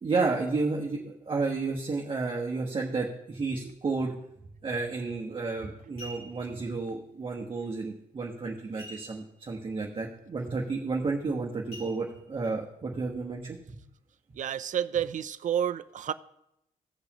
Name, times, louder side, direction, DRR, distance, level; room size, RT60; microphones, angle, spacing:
voice 1, 0.0-4.1 4.6-13.8, right 3 dB, 35° right, 1.3 m, -31 dB
sound 1, 5.1-5.3 5.8-6.6 8.8-9.5 9.8-9.9 10.4-10.6 11.7-12.5 13.1-13.2, equal, 75° left, 2.5 m, -47 dB
voice 2, 14.4-16.1, right 9 dB, 50° right, 0.5 m, -30 dB
16.5 x 6.6 x 3.0 m
cardioid pair, 120°, 16 cm